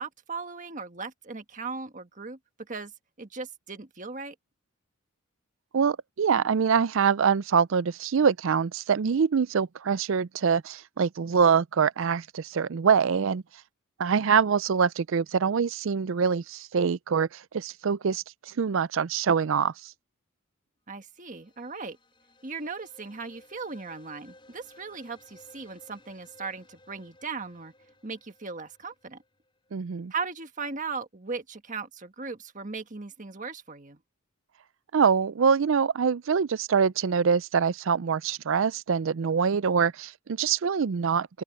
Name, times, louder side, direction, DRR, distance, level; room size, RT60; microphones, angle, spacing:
voice 1, 0.0-2.4 2.7-2.9 3.2-4.3 20.9-22.0 22.4-27.7 28.0-29.2 30.1-34.0, right 4 dB, 35° right, 1.5 m, -37 dB
voice 2, 5.7-13.4 14.0-19.9 29.7-30.1 34.9-41.4, right 6 dB, 60° right, 0.4 m, -24 dB
sound 1, 21.1-29.9, left 2 dB, 25° left, 6.8 m, -57 dB
open air
head